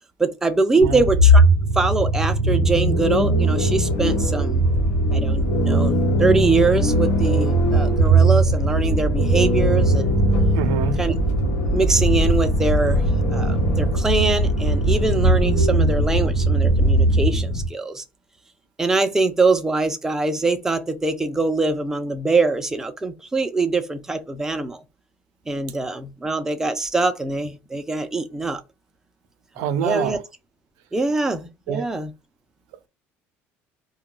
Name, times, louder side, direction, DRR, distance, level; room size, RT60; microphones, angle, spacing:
voice 1, 0.2-1.4 1.8-4.6 5.1-10.1 11.0-11.1 11.6-13.0 13.3-18.0 18.8-24.8 25.5-28.6 29.6-30.2 30.9-32.1, right 3 dB, 10° right, 0.5 m, -23 dB
sound 1, 0.8-17.7, right 1 dB, 75° left, 1.1 m, -19 dB
voice 2, 10.5-11.0 29.6-30.2 31.7-31.8, right 8 dB, 85° right, 0.5 m, -25 dB
2.2 x 2.2 x 3.7 m
cardioid pair, 125°, 5 cm